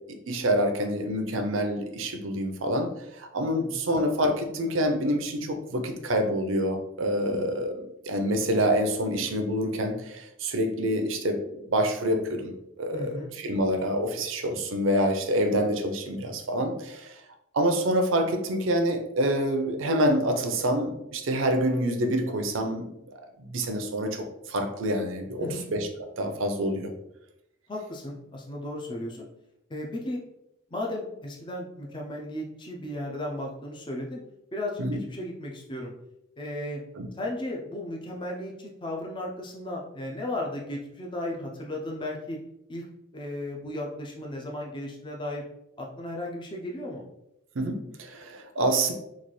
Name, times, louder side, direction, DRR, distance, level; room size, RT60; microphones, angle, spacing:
voice 1, 0.1-2.9 3.2-7.7 8.1-12.5 12.8-17.2 17.5-22.9 23.4-25.9 26.2-26.9 34.8-35.0 37.0-37.1 47.6-48.9, right 1 dB, 75° right, 5 dB, 0.6 m, -27 dB
voice 2, 3.6-4.0 12.9-13.3 25.4-25.6 27.7-29.3 29.7-30.2 30.7-34.2 34.5-34.8 35.1-35.9 36.4-36.8 37.2-42.4 42.7-42.8 43.1-45.4 45.8-47.1, left 1 dB, 25° left, -1 dB, 0.5 m, -35 dB
4.0 x 2.4 x 3.1 m, 0.83 s
head